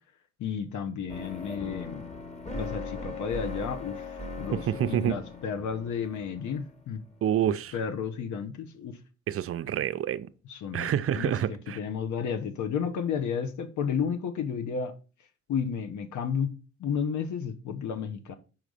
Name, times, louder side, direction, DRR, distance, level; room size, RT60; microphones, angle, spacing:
voice 1, 0.4-2.0 2.5-7.0 7.5-9.0 10.5-14.9 15.5-16.5 16.8-18.4, left 7 dB, 75° left, 1.0 m, -32 dB
sound 1, 1.1-7.2, left 3 dB, 20° left, 1.5 m, -39 dB
voice 2, 4.5-5.2 7.2-7.7 9.3-10.3 10.7-11.8, right 10 dB, 50° right, 0.5 m, -28 dB
5.9 x 4.0 x 4.9 m
cardioid pair, 90°, 30 cm